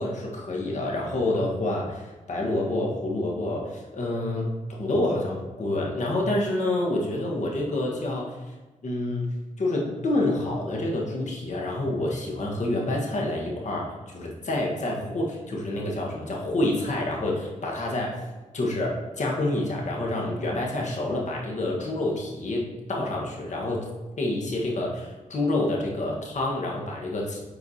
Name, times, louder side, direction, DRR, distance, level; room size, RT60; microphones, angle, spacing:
voice 1, 0.0-8.5 8.8-18.2 18.5-23.8 24.2-27.4, left 1 dB, 65° left, -2 dB, 1.5 m, -28 dB
8.3 x 4.6 x 2.8 m, 1.2 s
cardioid pair, 90°, 13 cm